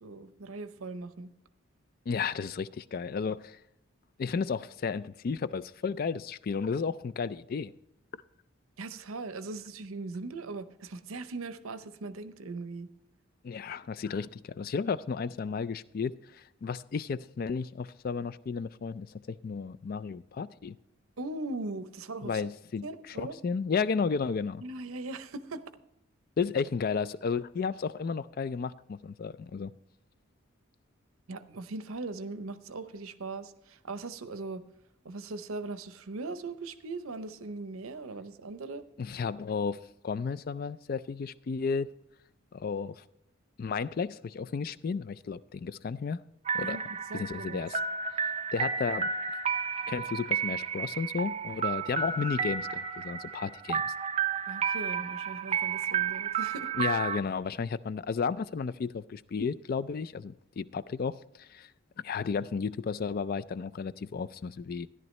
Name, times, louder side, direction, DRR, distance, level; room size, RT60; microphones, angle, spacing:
voice 1, 0.0-1.3 8.8-12.9 21.2-22.4 22.8-23.4 24.6-25.6 31.3-34.6 35.0-38.8 46.6-46.8 47.1-47.7 54.5-56.7, right 3 dB, 90° right, 0.7 m, -39 dB
voice 2, 2.1-3.6 4.2-7.7 13.4-20.8 22.2-24.6 26.4-29.7 39.0-39.8 40.0-41.9 42.5-43.0 43.6-46.2 46.5-46.8 47.1-47.8 48.5-49.1 49.9-53.9 56.7-61.7 62.0-64.9, left 5 dB, 45° left, 0.3 m, -33 dB
sound 1, 46.5-57.2, right 6 dB, 30° right, 0.4 m, -32 dB
13.5 x 10.5 x 3.2 m
head